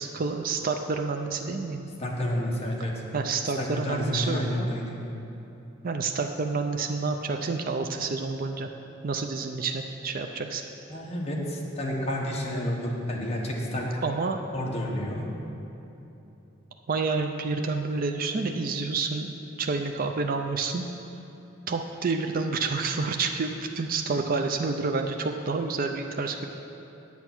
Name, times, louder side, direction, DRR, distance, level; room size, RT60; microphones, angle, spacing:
voice 1, 0.0-1.9 3.1-4.7 5.8-8.7 9.0-10.6 14.0-14.4 16.9-19.3 19.6-20.9 21.7-26.5, right 4 dB, 45° right, 5 dB, 0.5 m, -29 dB
voice 2, 2.0-2.9 3.6-4.8 10.9-13.9 14.5-15.3, left 1 dB, 30° left, -2 dB, 1.4 m, -30 dB
8.9 x 8.3 x 6.0 m, 3.0 s
head